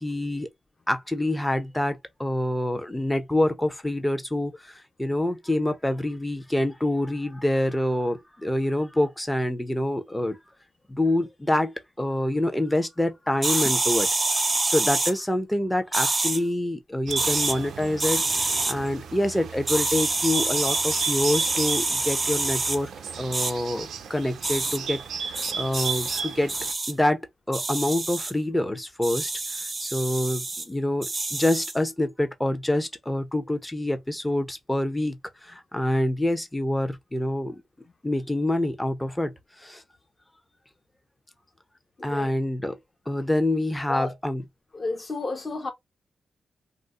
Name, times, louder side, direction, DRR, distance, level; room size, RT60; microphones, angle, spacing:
voice 1, 0.0-0.5 0.9-10.4 10.9-22.9 23.2-25.0 25.3-26.5 26.9-27.2 27.5-29.3 29.8-35.2 35.4-37.6 38.0-39.3 39.6-39.8 42.0-42.8 43.1-44.4, left 1 dB, 10° left, 0.7 m, -26 dB
sound 1, 13.4-15.1 15.9-16.4 17.1-17.5 18.0-18.7 19.7-22.8 23.3-23.5 24.4-24.8 25.3-26.2 26.5-26.9 27.5-28.3 29.0-30.6 31.0-31.8, right 2 dB, 30° right, 0.6 m, -26 dB
Bird, 17.1-26.7, right 6 dB, 85° right, 0.5 m, -35 dB
voice 2, 42.0-42.3 43.9-44.2 44.7-45.7, left 3 dB, 35° left, 1.1 m, -31 dB
2.6 x 2.1 x 3.6 m
cardioid pair, 80°, 0 cm